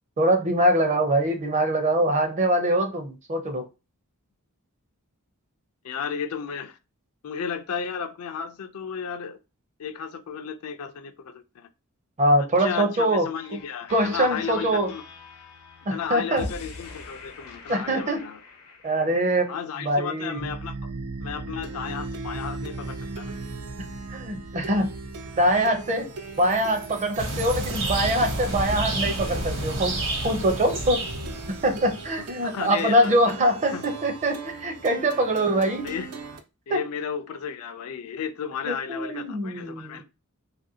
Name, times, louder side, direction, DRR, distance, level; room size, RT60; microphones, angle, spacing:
voice 1, 0.2-3.6 12.2-13.3 13.9-14.9 15.9-16.5 17.7-18.3 18.8-20.5 24.1-24.9 25.4-30.0 30.2-31.0 31.5-35.9 36.7-36.8 38.6-40.0, right 1 dB, 35° right, 0.6 m, -23 dB
voice 2, 5.8-6.8 7.2-9.4 9.8-11.7 12.4-15.0 15.9-18.4 19.5-20.9 21.2-23.3 32.2-33.2 33.7-33.9 35.6-36.1 36.7-40.0, left 7 dB, 70° left, 0.4 m, -34 dB
sound 1, 13.3-19.5, left 2 dB, 85° left, 0.8 m, -43 dB
Plucked string instrument, 20.4-36.4, right 3 dB, 80° right, 0.5 m, -38 dB
sound 2, 27.2-32.1, right 1 dB, 55° right, 1.0 m, -29 dB
3.0 x 2.5 x 2.7 m
head